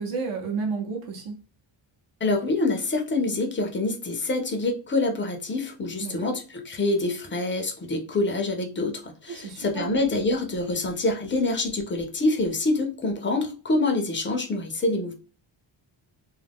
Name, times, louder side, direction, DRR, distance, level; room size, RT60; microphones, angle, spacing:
voice 1, 0.0-1.3 6.0-6.3 9.3-10.0, right 4 dB, 75° right, 2 dB, 0.7 m, -31 dB
voice 2, 2.2-15.1, left 2 dB, 25° left, 4 dB, 0.3 m, -26 dB
2.3 x 2.0 x 3.3 m, 0.35 s
wide cardioid pair, 175°, 49 cm